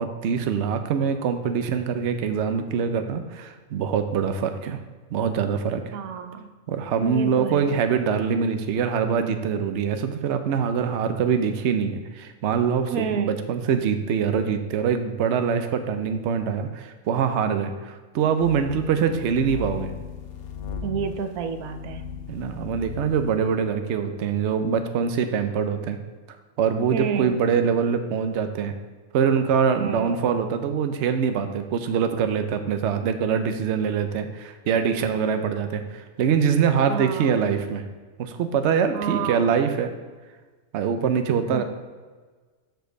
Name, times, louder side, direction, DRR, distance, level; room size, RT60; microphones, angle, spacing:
voice 1, 0.0-4.8 5.1-6.0 6.7-19.9 22.3-26.0 26.3-28.8 29.1-37.8 38.2-39.9 40.7-41.6, right 7 dB, 60° right, 7 dB, 0.9 m, -24 dB
voice 2, 5.9-6.5 6.9-7.8 12.9-13.4 20.8-22.0 26.9-27.4 29.8-30.2 36.9-37.4 38.9-39.5 41.5-41.6, right 7 dB, 90° right, 8 dB, 1.1 m, -30 dB
sound 1, 18.4-23.4, left 6 dB, 85° left, 1.1 m, -36 dB
7.8 x 4.6 x 6.4 m, 1.4 s
omnidirectional pair, 1.5 m